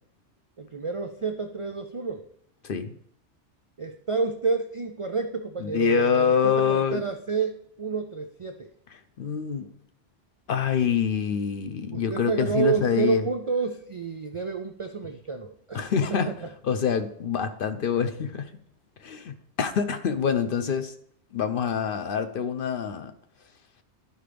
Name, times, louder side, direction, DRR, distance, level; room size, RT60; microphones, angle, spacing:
voice 1, 0.6-2.3 3.8-8.7 11.9-15.8 16.1-16.5, right 5 dB, 55° right, 5 dB, 0.3 m, -29 dB
voice 2, 2.6-2.9 5.6-7.0 9.2-9.7 10.5-13.2 15.7-16.3 16.6-18.5 19.0-20.9 21.3-23.1, left 7 dB, 60° left, 9 dB, 0.7 m, -26 dB
11.5 x 4.7 x 3.4 m, 0.66 s
omnidirectional pair, 1.2 m